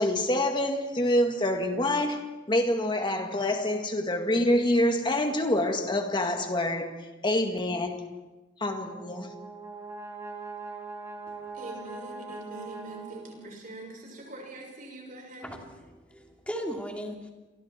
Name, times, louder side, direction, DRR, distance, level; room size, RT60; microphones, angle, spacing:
voice 1, 0.0-6.9 7.2-8.0 8.6-9.3, left 1 dB, 25° left, 2.0 m, -26 dB
Brass instrument, 8.6-13.7, right 4 dB, 15° right, 2.9 m, -41 dB
voice 2, 11.4-15.6, right 1 dB, 45° right, 6.3 m, -43 dB
voice 3, 15.4-17.3, equal, 5° left, 2.7 m, -37 dB
29.5 x 23.5 x 4.5 m
head